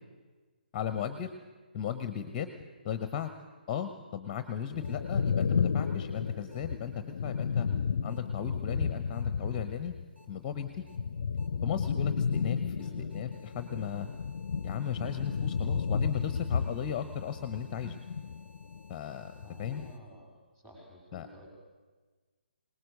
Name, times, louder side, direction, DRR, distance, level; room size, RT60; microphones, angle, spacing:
voice 1, 0.7-1.3 1.7-2.5 2.8-3.3 3.7-7.7 8.0-9.9 10.3-10.8 11.6-14.1 14.6-18.0 18.9-19.3 19.6-19.8 21.1-21.3, left 8 dB, 20° left, 10 dB, 0.8 m, -36 dB
sound 1, 3.2-3.3 4.8-4.9 6.5-6.6 8.1-8.2 9.1-9.2 10.2-10.3 10.9-11.0 11.4-11.5 11.8-11.9 12.3-12.4 12.8-20.0, left 1 dB, 75° right, 4.9 m, -62 dB
sound 2, 4.7-10.0 10.3-18.9 19.2-19.9, left 6 dB, 50° left, 0.5 m, -32 dB
voice 2, 12.8-13.2 19.4-21.5, equal, 10° right, -1 dB, 4.7 m, -53 dB
21.5 x 19.0 x 6.6 m, 1.4 s
figure-of-eight pair, 140°, 6 cm